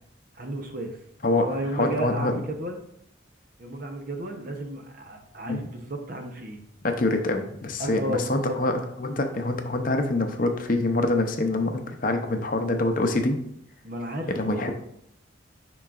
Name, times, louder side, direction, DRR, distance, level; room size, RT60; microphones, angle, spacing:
voice 1, 0.3-1.0 1.4-2.8 3.6-6.6 7.8-8.6 13.8-14.7, right 1 dB, 45° right, 4 dB, 0.8 m, -33 dB
voice 2, 1.7-2.3 5.5-5.6 6.8-8.7 9.0-13.4 14.3-14.7, left 2 dB, 45° left, 5 dB, 0.6 m, -25 dB
10.5 x 3.9 x 2.5 m, 0.74 s
head